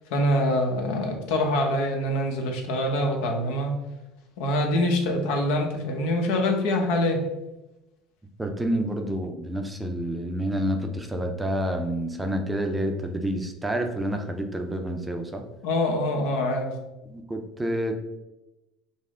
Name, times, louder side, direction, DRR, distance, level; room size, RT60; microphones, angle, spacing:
voice 1, 0.1-3.7 4.4-7.2 15.6-16.8, left 1 dB, 80° left, 2 dB, 0.8 m, -25 dB
voice 2, 8.4-15.4 17.1-18.0, equal, 10° right, 4 dB, 0.5 m, -28 dB
5.4 x 2.1 x 3.7 m, 0.98 s
supercardioid pair, 115°, 0 cm